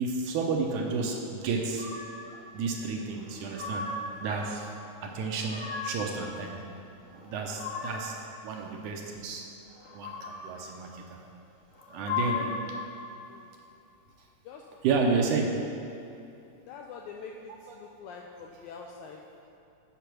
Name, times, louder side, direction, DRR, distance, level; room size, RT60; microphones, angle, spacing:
voice 1, 0.0-1.9 2.5-3.9 4.2-4.7 5.0-6.6 7.1-8.1 8.4-9.4 9.9-11.2 11.9-12.4 14.8-15.5 17.5-17.8 18.8-18.9, right 4 dB, 75° right, 1 dB, 2.0 m, -31 dB
sound 1, 1.8-2.4 3.2-4.2 5.2-6.2 7.1-8.2 9.8-10.6 11.7-12.8, left 4 dB, 60° left, 1.1 m, -36 dB
voice 2, 16.7-17.3 17.7-19.2, left 6 dB, 85° left, 0 dB, 1.7 m, -44 dB
8.3 x 5.6 x 6.0 m, 2.7 s
omnidirectional pair, 3.9 m